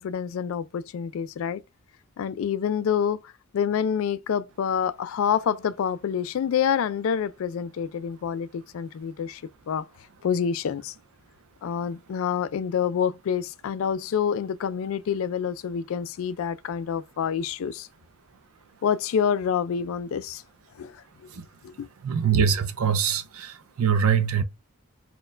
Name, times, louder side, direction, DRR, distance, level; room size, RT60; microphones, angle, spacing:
voice 1, 0.0-1.6 2.2-3.2 3.5-9.4 9.7-9.8 10.2-10.9 11.6-17.9 18.8-20.4 20.8-21.3 21.6-21.9, left 7 dB, 65° left, 0.3 m, -27 dB
voice 2, 22.0-24.4, right 7 dB, 70° right, 0.4 m, -23 dB
4.3 x 2.3 x 3.2 m
head